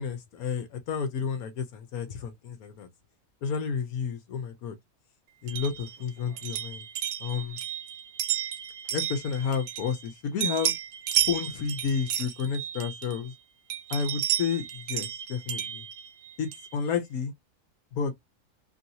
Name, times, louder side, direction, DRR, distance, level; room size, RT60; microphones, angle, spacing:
voice 1, 0.0-2.9 3.4-4.8 5.4-6.8 7.2-7.6 8.9-10.7 11.2-13.3 13.9-15.8 16.4-17.3 17.9-18.1, left 6 dB, 75° left, 1.2 m, -31 dB
sound 1, 5.5-10.1 10.4-13.3 13.7-16.8, right 10 dB, 75° right, 1.1 m, -32 dB
3.0 x 2.7 x 2.7 m
omnidirectional pair, 1.6 m